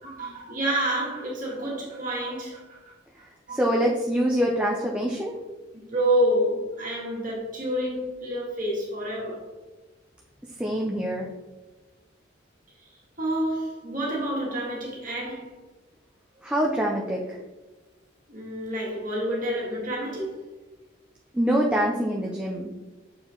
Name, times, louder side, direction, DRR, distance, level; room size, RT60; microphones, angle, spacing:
voice 1, 0.0-2.8 3.5-3.6 5.7-9.4 12.8-12.9 13.2-15.5 18.3-20.3, right 1 dB, 45° right, 1.9 m, -28 dB
voice 2, 3.5-5.4 10.6-11.3 16.4-17.4 21.3-22.7, equal, 5° right, 0.6 m, -25 dB
6.9 x 4.3 x 3.8 m
head